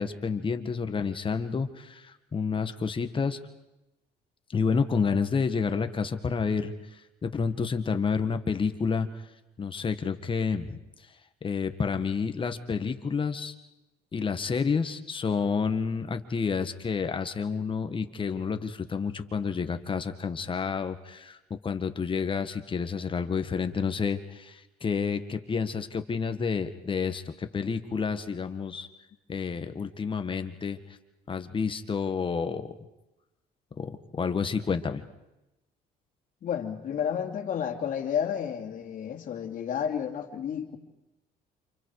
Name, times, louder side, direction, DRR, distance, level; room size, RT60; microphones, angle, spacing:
voice 1, 0.0-3.4 4.5-6.7 7.2-9.1 9.6-10.8 11.4-13.5 14.1-28.9 29.3-30.8 31.3-32.7 33.8-35.0, left 5 dB, 30° left, 8 dB, 1.8 m, -29 dB
voice 2, 36.4-40.8, left 8 dB, 50° left, 3 dB, 2.9 m, -31 dB
29.5 x 27.5 x 4.9 m, 0.95 s
cardioid pair, 110°, 17 cm